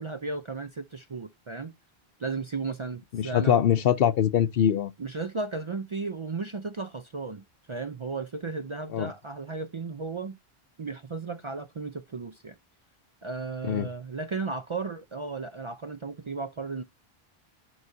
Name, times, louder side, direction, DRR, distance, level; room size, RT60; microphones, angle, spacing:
voice 1, 0.0-1.7 2.2-3.6 5.0-10.4 10.8-12.6 13.2-16.8, right 4 dB, 40° right, 0.4 m, -35 dB
voice 2, 3.1-4.9 8.9-9.1 13.6-13.9, left 9 dB, 70° left, 0.8 m, -23 dB
11.0 x 4.7 x 2.6 m
omnidirectional pair, 1.0 m